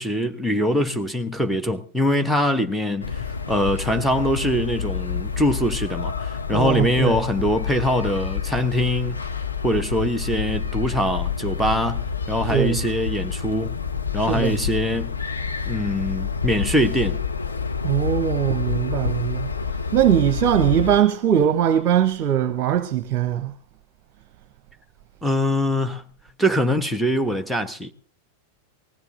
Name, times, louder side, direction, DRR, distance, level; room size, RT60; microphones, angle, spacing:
voice 1, 0.0-9.2 9.6-13.8 14.1-15.1 15.7-17.2 25.2-26.0 26.4-27.9, left 1 dB, ahead, 1.3 m, -23 dB
sound 1, 3.0-21.0, left 6 dB, 80° left, 1.0 m, -28 dB
voice 2, 6.5-7.2 12.5-12.8 14.2-14.6 17.8-19.5 19.9-23.5, right 10 dB, 40° right, 0.9 m, -21 dB
20.5 x 16.0 x 3.8 m
figure-of-eight pair, 90°, 0 cm